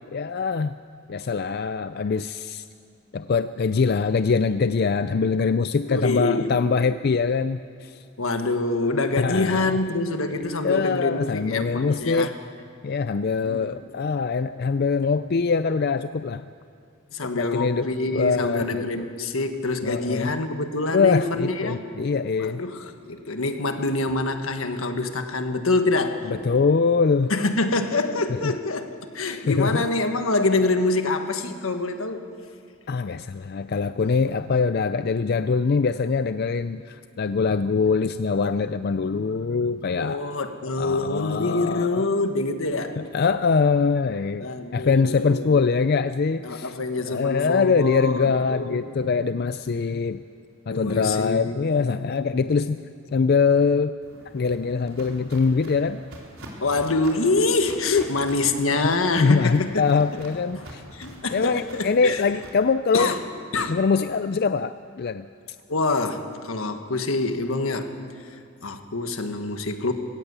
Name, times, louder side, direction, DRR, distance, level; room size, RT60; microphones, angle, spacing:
voice 1, 0.1-0.8 1.1-2.7 3.1-8.0 9.2-9.8 10.6-12.3 12.8-16.5 17.2-19.1 19.8-20.3 20.9-22.6 26.3-27.3 28.4-28.5 29.3-29.9 32.9-40.2 40.8-42.1 43.0-44.5 44.7-46.8 47.1-50.2 50.7-52.8 53.1-53.9 54.3-56.1 57.9-58.2 58.8-60.8 61.3-63.1 63.7-65.3, left 5 dB, 50° left, 12 dB, 0.4 m, -23 dB
voice 2, 5.9-6.5 8.2-12.3 13.4-13.8 17.1-21.8 22.4-26.3 27.3-28.9 29.1-32.2 40.0-43.0 44.4-45.6 46.4-48.8 50.7-51.6 56.6-59.9 60.6-60.7 60.9-62.2 62.9-63.2 63.5-63.8 65.7-67.9 68.6-69.9, left 2 dB, 80° left, 7 dB, 1.5 m, -25 dB
Walk footsteps, 54.0-62.5, right 1 dB, 80° right, 4.0 m, -44 dB
19.5 x 17.5 x 8.2 m, 2.4 s
head